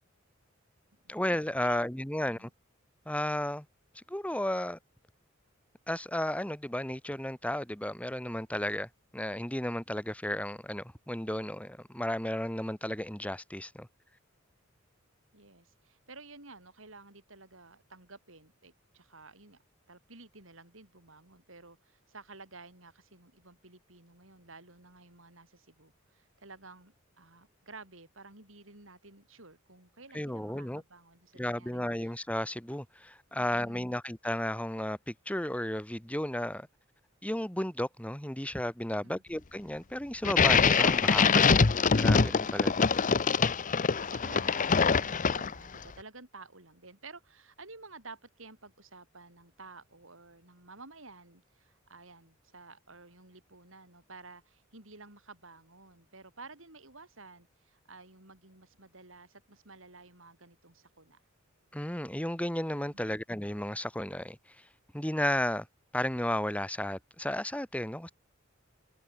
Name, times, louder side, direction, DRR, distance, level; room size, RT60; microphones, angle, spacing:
voice 1, 1.1-2.5 3.1-3.6 3.9-4.8 5.9-13.9 30.1-30.8 31.3-36.7 37.2-42.7 61.7-64.4 64.9-65.7 65.9-68.1, left 1 dB, 5° left, 2.8 m, -33 dB
voice 2, 2.2-2.5 15.3-19.6 19.9-32.1 33.4-34.0 38.9-39.2 43.9-61.2, right 3 dB, 70° right, 7.9 m, -52 dB
sound 1, 40.2-45.7, left 5 dB, 40° left, 0.7 m, -24 dB
head